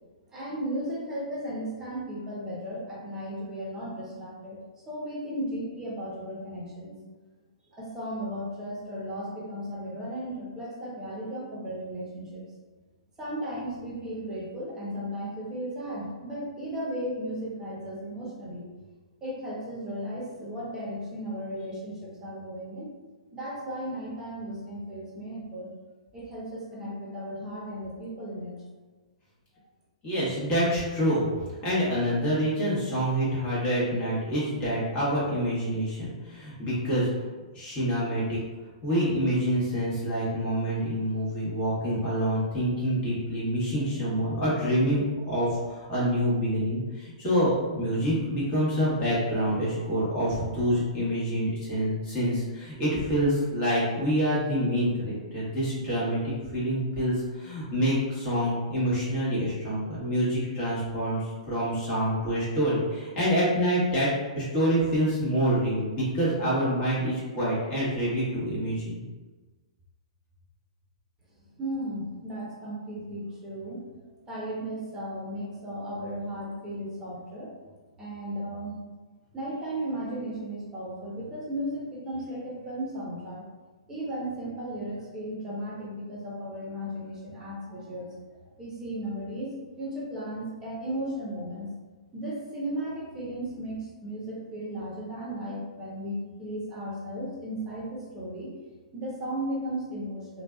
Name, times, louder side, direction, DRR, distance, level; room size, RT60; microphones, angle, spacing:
voice 1, 0.3-4.6 4.9-6.9 7.7-12.4 13.2-18.6 19.2-22.9 23.3-25.7 26.1-28.5 71.6-73.8 74.3-77.5 78.0-78.8 79.3-83.4 83.9-88.1 88.6-91.7 92.1-98.5 98.9-100.4, right 1 dB, 15° right, -6 dB, 0.9 m, -35 dB
voice 2, 30.0-31.3 31.6-37.1 37.5-38.4 38.8-64.1 64.4-69.0, equal, 25° left, -8 dB, 1.2 m, -27 dB
2.5 x 2.3 x 2.3 m, 1.3 s
hypercardioid pair, 135°, 4 cm